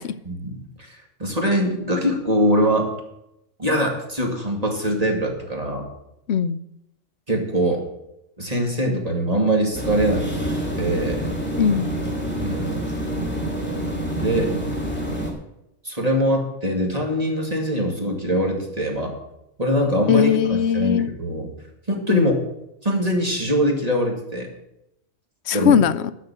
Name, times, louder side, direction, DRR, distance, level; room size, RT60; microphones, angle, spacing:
voice 1, 0.2-2.9 3.6-5.8 7.3-7.8 8.4-10.3 10.8-11.3 12.4-12.8 14.2-14.5 15.8-19.1 19.6-21.5 21.9-22.4 22.8-24.5 25.5-25.8, equal, 30° right, 1 dB, 2.4 m, -23 dB
voice 2, 6.3-6.6 11.6-11.9 20.1-21.1 22.1-22.3 25.5-26.1, left 8 dB, 65° left, 13 dB, 0.8 m, -19 dB
sound 1, 9.7-15.3, right 1 dB, 10° left, 2.4 m, -27 dB
12.0 x 5.8 x 8.7 m, 0.83 s
omnidirectional pair, 1.3 m